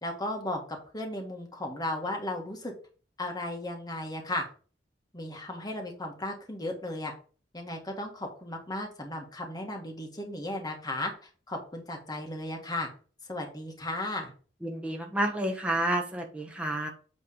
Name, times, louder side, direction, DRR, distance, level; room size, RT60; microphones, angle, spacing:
voice 1, 0.0-2.7 3.2-4.4 5.1-7.1 7.5-11.1 11.5-12.9 13.3-14.3, left 1 dB, 20° left, 2 dB, 1.6 m, -35 dB
voice 2, 14.6-16.9, right 1 dB, 5° right, 0 dB, 1.3 m, -30 dB
8.6 x 3.5 x 5.2 m, 0.39 s
head